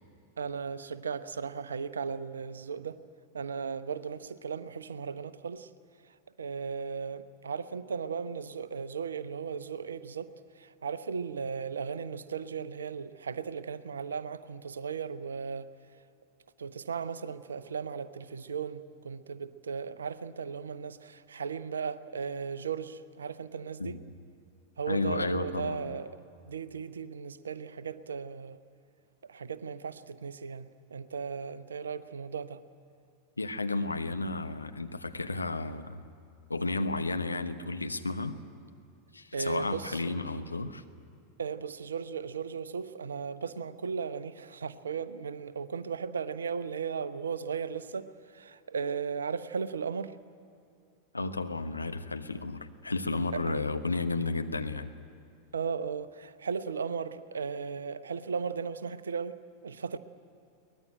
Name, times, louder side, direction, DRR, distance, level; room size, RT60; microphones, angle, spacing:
voice 1, 0.4-3.0 3.3-5.7 6.4-10.3 10.6-15.7 16.6-24.0 24.8-26.2 26.5-28.6 29.2-32.6 39.3-40.0 41.4-50.1 53.3-53.6 55.5-59.4 59.6-60.0, right 6 dB, 70° right, 14 dB, 0.8 m, -36 dB
voice 2, 24.9-25.9 33.4-36.0 36.5-38.4 39.1-40.8 51.1-54.9, left 3 dB, 80° left, 7 dB, 1.0 m, -32 dB
23.5 x 19.0 x 9.1 m, 2.5 s
figure-of-eight pair, 90°, 0 cm